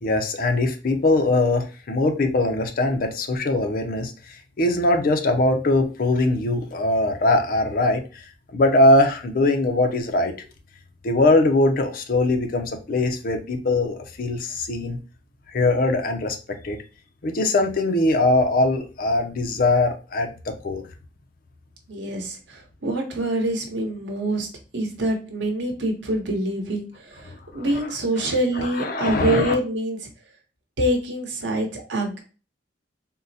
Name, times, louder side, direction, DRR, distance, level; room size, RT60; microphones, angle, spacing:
voice 1, 0.0-4.1 4.6-8.2 8.5-10.3 11.0-15.0 15.5-16.4 16.6-16.8 17.2-20.8 27.5-27.7 28.2-29.5, left 2 dB, 55° left, 0.5 m, -21 dB
voice 2, 21.9-24.5 24.7-30.0 30.8-32.2, right 1 dB, 90° right, 0.8 m, -25 dB
3.7 x 2.1 x 2.6 m
head